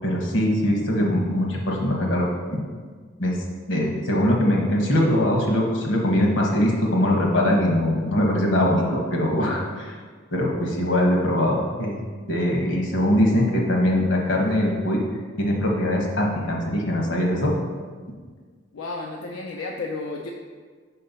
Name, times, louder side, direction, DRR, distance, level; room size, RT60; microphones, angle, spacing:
voice 1, 0.0-2.6 3.2-3.4 3.7-9.9 10.3-12.0 12.3-15.0 15.4-17.5, left 1 dB, 70° left, 0 dB, 1.1 m, -22 dB
voice 2, 18.7-20.3, left 3 dB, 90° left, 0 dB, 0.5 m, -32 dB
4.7 x 4.3 x 5.4 m, 1.5 s
head